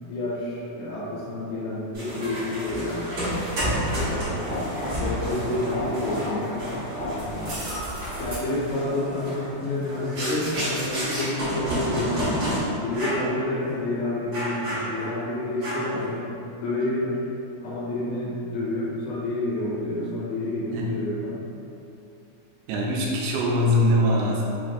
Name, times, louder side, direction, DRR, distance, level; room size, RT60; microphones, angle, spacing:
voice 1, 0.0-3.1 4.1-6.8 7.1-7.6 8.2-12.4 12.8-17.2 17.6-21.4, left 1 dB, 75° left, -7 dB, 2.3 m, -29 dB
sound 1, 1.9-12.6 12.9-13.3 13.7-13.8 14.3-15.2 15.6-16.0, equal, 70° right, 1.2 m, -30 dB
voice 2, 22.7-24.4, left 1 dB, 90° right, -3 dB, 2.8 m, -22 dB
6.3 x 2.5 x 2.5 m, 2.7 s
omnidirectional pair, 4.8 m